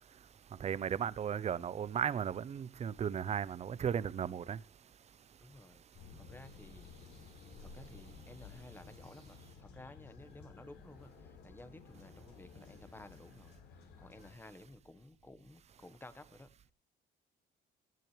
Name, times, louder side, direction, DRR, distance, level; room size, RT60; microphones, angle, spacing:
voice 1, 0.6-4.6, right 8 dB, 40° right, 0.8 m, -35 dB
voice 2, 5.4-5.8 6.2-6.9 7.6-16.7, left 2 dB, 10° left, 1.4 m, -55 dB
sound 1, 5.9-14.3, left 5 dB, 80° left, 4.7 m, -55 dB
18.5 x 12.5 x 3.3 m
cardioid pair, 110°, 17 cm